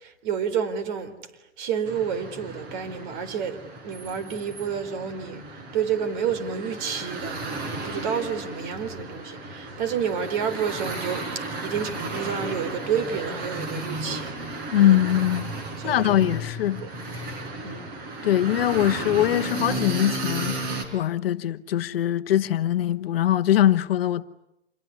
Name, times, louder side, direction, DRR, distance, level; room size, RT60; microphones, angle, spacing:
voice 1, 0.0-1.1 1.6-5.4 5.7-14.4 14.8-15.0 15.8-16.1 17.6-17.9, right 7 dB, 40° right, 3.9 m, -29 dB
sound 1, 1.9-20.9, right 2 dB, 25° right, 5.2 m, -34 dB
voice 2, 14.7-15.5 15.8-16.8 18.2-24.2, left 12 dB, 55° left, 1.2 m, -22 dB
27.0 x 21.5 x 9.8 m
hypercardioid pair, 140°, 35 cm